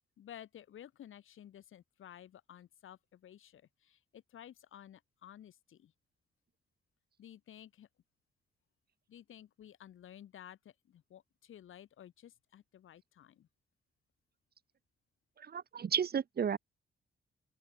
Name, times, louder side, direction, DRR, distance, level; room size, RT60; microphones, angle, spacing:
voice 1, 0.2-5.9 7.2-7.9 9.1-13.5, left 10 dB, 75° left, 1.6 m, -54 dB
voice 2, 15.4-16.6, right 7 dB, 50° right, 1.0 m, -33 dB
open air
cardioid pair, 75°, 21 cm